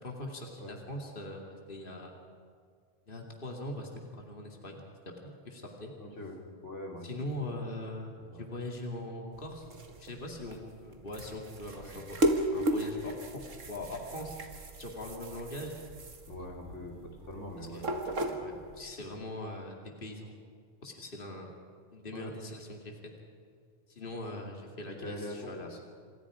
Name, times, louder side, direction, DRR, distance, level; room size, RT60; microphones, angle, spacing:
voice 1, 0.0-2.2 3.1-4.8 5.2-5.9 7.0-9.7 10.0-12.2 12.5-13.4 13.7-14.4 14.8-15.7 17.7-18.1 18.4-20.4 20.8-21.5 21.9-23.0 23.9-25.7, left 1 dB, 45° left, 1 dB, 2.8 m, -41 dB
voice 2, 6.0-7.1 8.3-8.4 11.7-11.9 16.3-18.0 22.1-22.4 24.9-25.8, left 1 dB, 70° left, 1 dB, 3.3 m, -43 dB
sound 1, 9.3-18.9, right 1 dB, 80° right, 2.2 m, -35 dB
28.0 x 26.5 x 5.0 m, 2.1 s
omnidirectional pair, 1.3 m